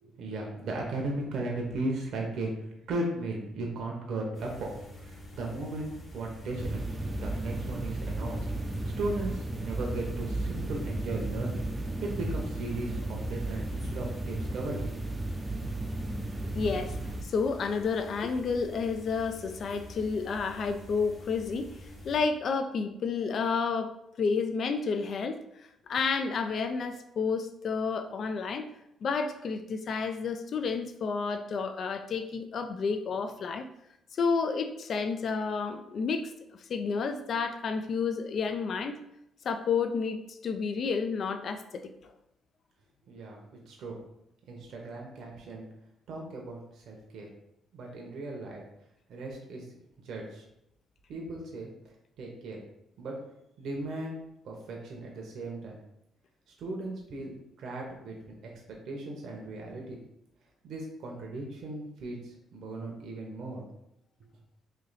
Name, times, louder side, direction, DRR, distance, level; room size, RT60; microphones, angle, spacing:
voice 1, 0.0-6.9 7.2-14.8 43.1-44.0 44.5-45.7 46.1-47.3 47.7-48.6 49.1-49.6 50.0-50.4 51.1-51.7 52.2-52.6 53.0-53.1 53.6-54.2 54.4-55.8 56.6-60.0 60.6-63.7, right 2 dB, 70° right, 0 dB, 0.8 m, -37 dB
sound 1, 4.3-22.2, left 1 dB, 40° left, 1.4 m, -47 dB
sound 2, 6.6-17.2, right 2 dB, 20° right, 0.4 m, -34 dB
voice 2, 16.5-17.0 17.2-23.9 24.2-25.4 25.9-28.7 29.0-33.7 34.1-39.0 39.4-42.1, left 5 dB, 60° left, 7 dB, 0.3 m, -30 dB
3.2 x 2.7 x 3.9 m, 0.82 s
cardioid pair, 90°, 0 cm